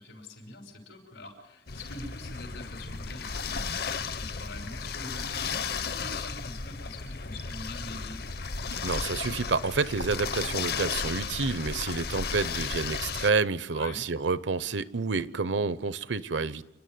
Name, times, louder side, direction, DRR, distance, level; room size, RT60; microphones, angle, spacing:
voice 1, 0.0-8.3 13.7-14.0, left 2 dB, 90° left, 6.0 m, -44 dB
sound 1, 1.7-13.3, left 5 dB, 55° left, 0.9 m, -34 dB
voice 2, 8.8-16.6, right 4 dB, 75° right, 0.8 m, -29 dB
29.0 x 11.5 x 9.4 m
head